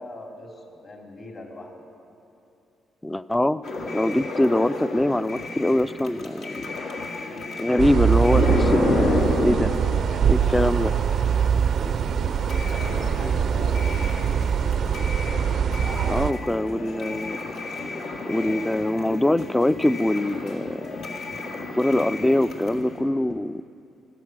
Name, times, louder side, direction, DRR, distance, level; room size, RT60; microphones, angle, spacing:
voice 1, 0.0-1.7 12.2-14.3, left 2 dB, 45° left, 1 dB, 2.8 m, -42 dB
voice 2, 3.0-3.6 3.9-6.7 7.6-9.8 10.3-10.9 16.1-17.4 18.3-21.0 21.7-23.6, left 1 dB, 10° left, 16 dB, 0.3 m, -23 dB
sound 1, 3.6-23.0, left 2 dB, 75° left, 2.0 m, -31 dB
sound 2, 7.8-16.3, right 8 dB, 60° right, 0.4 m, -23 dB
14.5 x 13.5 x 6.0 m, 2.7 s
cardioid pair, 90°, 0 cm